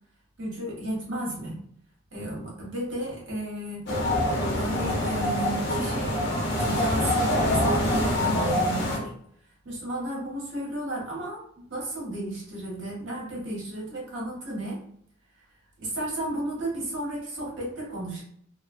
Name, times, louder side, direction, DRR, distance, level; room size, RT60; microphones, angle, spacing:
voice 1, 0.4-1.6 2.1-3.9 4.3-6.2 6.6-9.1 9.6-14.8 15.8-18.2, right 1 dB, 60° right, -4 dB, 1.0 m, -33 dB
sound 1, 3.9-9.0, left 1 dB, 50° left, 0.7 m, -25 dB
2.9 x 2.0 x 2.5 m, 0.66 s
head